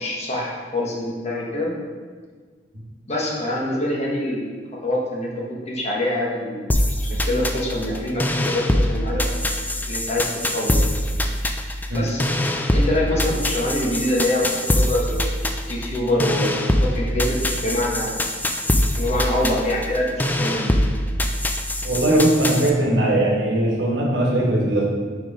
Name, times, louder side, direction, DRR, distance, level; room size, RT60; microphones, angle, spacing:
voice 1, 0.0-1.7 3.1-4.5 4.8-6.6 7.0-9.2 9.9-10.9 11.9-12.3 12.7-15.3 15.7-16.5 16.8-18.1 18.9-20.8, left 1 dB, 35° left, -3 dB, 1.2 m, -25 dB
sound 1, 6.7-22.7, left 1 dB, 10° left, 0.3 m, -23 dB
voice 2, 21.8-24.8, right 1 dB, 75° right, -2 dB, 1.4 m, -19 dB
5.0 x 4.6 x 4.9 m, 1.5 s
head